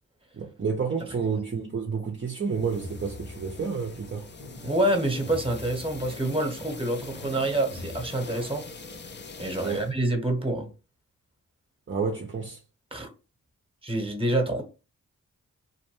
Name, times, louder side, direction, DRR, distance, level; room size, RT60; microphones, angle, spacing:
voice 1, 0.3-4.3 9.6-9.8 11.9-12.6, right 5 dB, 35° right, 0.6 m, -30 dB
sound 1, 2.5-9.9, left 4 dB, 30° left, 0.5 m, -43 dB
sound 2, 2.6-8.1, left 2 dB, 75° left, 1.4 m, -45 dB
voice 2, 4.6-8.6 9.4-10.7 12.9-13.1 13.8-14.6, right 1 dB, 15° right, 1.0 m, -27 dB
2.6 x 2.1 x 3.0 m
cardioid pair, 40°, 36 cm